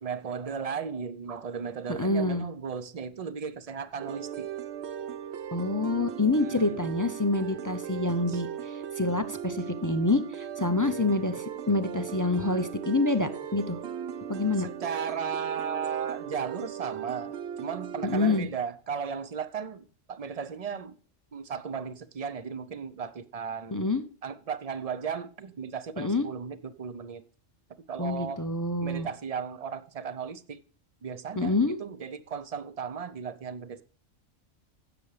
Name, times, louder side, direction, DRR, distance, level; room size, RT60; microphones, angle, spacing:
voice 1, 0.0-4.5 6.4-7.0 8.3-8.4 10.8-11.1 14.6-21.0 21.3-23.9 24.2-27.2 27.9-28.4 28.8-30.6 31.0-33.8, right 6 dB, 40° right, 0.6 m, -36 dB
voice 2, 1.9-2.5 5.5-13.8 14.3-14.7 18.0-18.5 23.7-24.0 26.0-26.3 28.0-29.1 31.4-31.8, left 2 dB, 25° left, 0.4 m, -27 dB
sound 1, 4.0-18.4, right 9 dB, 65° right, 0.9 m, -38 dB
16.0 x 6.8 x 3.2 m
omnidirectional pair, 1.3 m